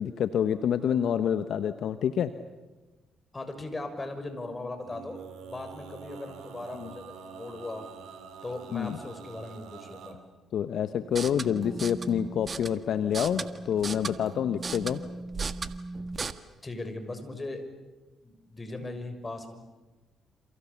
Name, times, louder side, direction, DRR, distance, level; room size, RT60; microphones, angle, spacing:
voice 1, 0.0-2.3 6.7-6.9 8.7-9.0 10.5-15.0, left 9 dB, 65° left, 11 dB, 1.1 m, -27 dB
voice 2, 3.3-7.9 8.4-10.2 16.6-17.7 18.2-19.5, left 2 dB, 25° left, 7 dB, 6.5 m, -38 dB
Male singing, 4.8-10.2, right 6 dB, 70° right, 3.1 m, -46 dB
sound 1, 11.0-16.3, right 4 dB, 40° right, 1.6 m, -37 dB
28.5 x 28.5 x 7.2 m, 1.2 s
hypercardioid pair, 45°, 0 cm